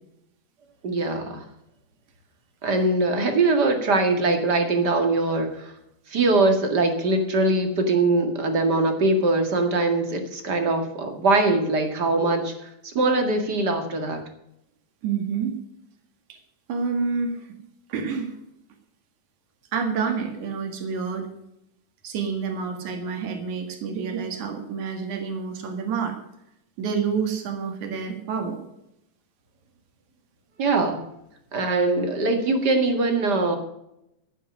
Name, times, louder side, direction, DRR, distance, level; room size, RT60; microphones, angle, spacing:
voice 1, 0.8-1.4 2.6-5.7 6.1-14.2 30.6-31.0 31.5-33.6, right 2 dB, 40° right, 5 dB, 2.2 m, -22 dB
voice 2, 15.0-15.6 16.3-16.4 16.7-17.5 17.9-18.4 19.7-21.3 22.0-26.2 26.8-28.6, right 5 dB, 85° right, 5 dB, 3.3 m, -28 dB
13.0 x 9.0 x 6.2 m, 0.81 s
omnidirectional pair, 3.4 m